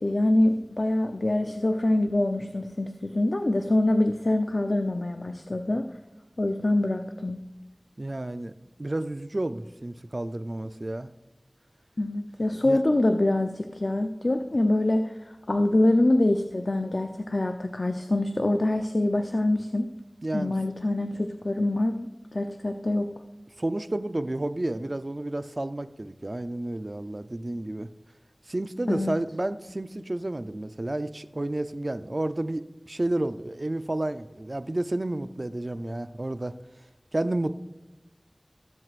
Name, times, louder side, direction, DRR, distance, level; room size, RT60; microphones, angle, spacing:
voice 1, 0.0-5.9 6.4-7.4 12.0-15.2 15.5-19.9 20.3-23.1 28.9-29.2, left 1 dB, 70° left, 5 dB, 0.7 m, -25 dB
voice 2, 8.0-11.1 12.6-12.8 20.2-20.5 23.6-27.9 28.5-36.6 37.1-37.5, right 1 dB, 55° right, 11 dB, 0.6 m, -31 dB
19.0 x 7.8 x 2.5 m, 1.1 s
wide cardioid pair, 45°, 0 cm